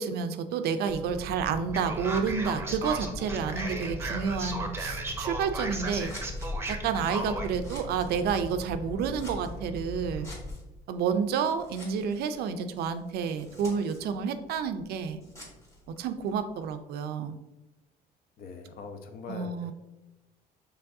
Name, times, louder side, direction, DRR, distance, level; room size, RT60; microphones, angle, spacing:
voice 1, 0.0-6.1 6.7-10.3 10.9-15.2 16.0-17.4 19.3-19.7, right 6 dB, 70° right, 10 dB, 0.4 m, -30 dB
sound 1, 0.8-10.5, left 1 dB, 80° left, 1.3 m, -40 dB
Male speech man speaking, 1.7-7.5, right 2 dB, 15° right, 0.6 m, -35 dB
Scissors, 6.0-16.8, left 1 dB, 15° left, 1.3 m, -52 dB
voice 2, 18.4-19.7, left 4 dB, 60° left, 6 dB, 0.6 m, -42 dB
4.6 x 3.3 x 2.6 m, 1.0 s
cardioid pair, 110°, 17 cm